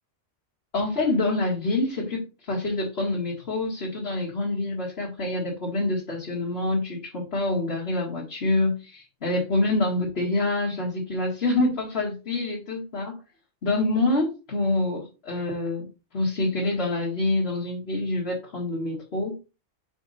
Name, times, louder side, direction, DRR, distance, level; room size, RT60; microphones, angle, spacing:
voice 1, 0.7-13.2 13.6-15.9 16.1-19.4, left 2 dB, 55° left, -5 dB, 1.9 m, -26 dB
5.4 x 4.4 x 4.0 m, 0.30 s
omnidirectional pair, 1.3 m